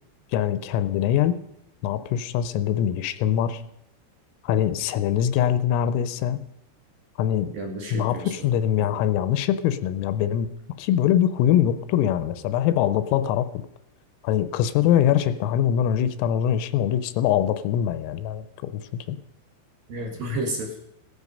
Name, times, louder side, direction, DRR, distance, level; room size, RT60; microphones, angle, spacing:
voice 1, 0.3-1.4 1.8-3.6 4.4-6.4 7.2-7.5 7.9-10.5 10.8-13.5 14.2-19.2, left 10 dB, 85° left, 12 dB, 3.4 m, -23 dB
voice 2, 7.5-8.5 8.8-9.0 19.9-20.7, right 1 dB, 60° right, 1 dB, 2.7 m, -32 dB
16.5 x 13.5 x 5.4 m, 0.81 s
omnidirectional pair, 5.9 m